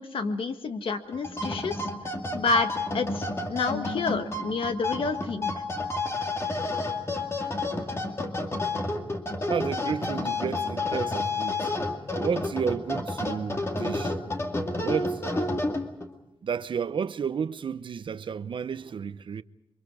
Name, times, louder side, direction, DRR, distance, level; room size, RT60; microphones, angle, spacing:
voice 1, 0.0-2.7 2.9-5.5, left 4 dB, 80° left, 1.7 m, -29 dB
sound 1, 1.1-16.1, left 2 dB, 30° left, 2.3 m, -30 dB
voice 2, 9.5-11.7 12.2-14.1 14.8-15.2 16.4-19.4, right 7 dB, 65° right, 0.8 m, -31 dB
29.0 x 24.0 x 4.9 m
wide cardioid pair, 130°, 9 cm